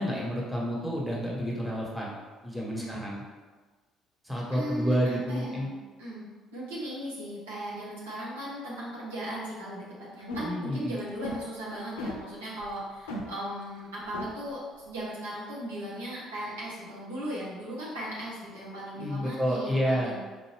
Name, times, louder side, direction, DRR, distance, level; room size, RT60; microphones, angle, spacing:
voice 1, 0.0-2.2 2.4-3.2 4.2-5.7 10.4-11.0 18.9-20.1, equal, 5° right, -4 dB, 1.3 m, -29 dB
voice 2, 4.5-5.7 6.0-6.2 6.5-9.9 10.1-20.2, equal, 80° right, -7 dB, 1.0 m, -37 dB
sound 1, 10.2-10.7 11.0-11.4 12.0-12.2 12.6-12.8 13.1-13.3 13.8-13.9 14.1-14.3, left 1 dB, 80° left, 0.4 m, -34 dB
4.5 x 2.5 x 3.2 m, 1.3 s
hypercardioid pair, 55°, 0 cm